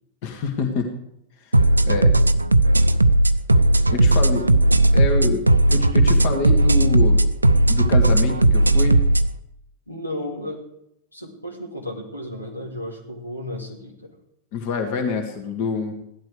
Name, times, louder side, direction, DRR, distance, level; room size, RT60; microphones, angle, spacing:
voice 1, 0.2-0.9 1.9-2.1 3.9-4.5 4.9-5.4 5.7-7.2 7.7-9.1 14.5-15.9, left 3 dB, 50° left, 4 dB, 2.3 m, -26 dB
sound 1, 1.5-9.3, right 1 dB, 80° right, 0.6 m, -16 dB
voice 2, 3.9-4.6 5.1-5.4 9.9-10.6 11.1-14.2, left 1 dB, 85° left, 1 dB, 2.6 m, -34 dB
16.0 x 12.0 x 4.9 m, 0.77 s
figure-of-eight pair, 90°, 0 cm